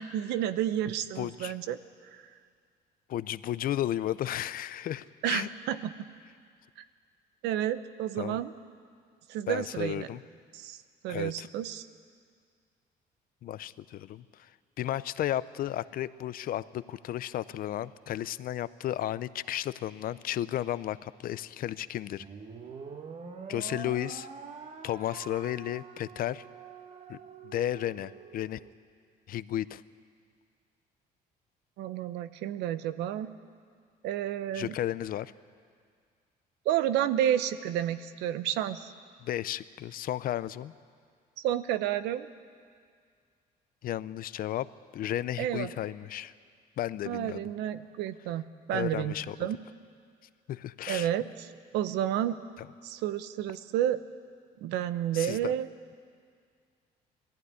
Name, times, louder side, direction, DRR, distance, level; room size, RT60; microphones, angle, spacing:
voice 1, 0.0-1.8 5.2-6.1 7.4-8.5 9.3-10.1 10.5-11.9 31.8-33.3 34.0-34.8 36.6-38.9 41.4-42.3 45.4-45.7 47.1-49.1 49.4-49.6 50.9-52.4 52.8-54.0 54.6-55.7, right 11 dB, 90° right, 12 dB, 0.8 m, -31 dB
voice 2, 1.2-1.5 3.1-5.5 8.2-8.4 9.5-10.2 11.1-11.5 13.4-14.5 14.8-22.2 23.5-24.3 24.8-26.4 27.1-27.2 27.4-28.6 29.3-29.8 34.5-35.3 39.2-40.7 43.8-44.7 44.9-46.3 46.8-47.4 48.7-49.4 50.5-51.1 55.1-55.5, left 12 dB, 60° left, 17 dB, 0.6 m, -33 dB
sound 1, 22.2-28.7, right 5 dB, 40° right, 1.4 m, -45 dB
20.0 x 15.0 x 9.6 m, 2.1 s
cardioid pair, 110°, 17 cm